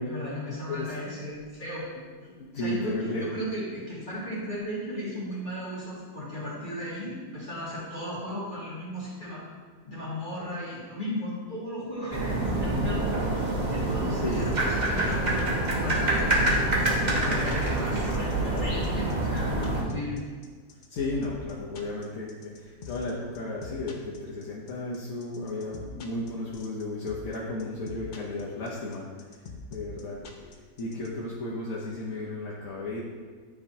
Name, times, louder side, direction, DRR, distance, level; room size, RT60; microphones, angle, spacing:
voice 1, 0.0-1.9 2.5-9.4 9.8-16.5 17.0-20.2, equal, 35° left, -9 dB, 2.1 m, -36 dB
voice 2, 0.7-1.0 2.3-3.2 14.1-14.5 14.9-15.1 20.9-29.1 29.7-33.0, left 2 dB, 65° left, -5 dB, 1.2 m, -34 dB
sound 1, 12.1-19.8, right 1 dB, 35° right, 1.1 m, -26 dB
sound 2, 14.3-31.1, left 5 dB, 85° left, 0.4 m, -44 dB
10.0 x 3.4 x 2.7 m, 1.5 s
omnidirectional pair, 1.6 m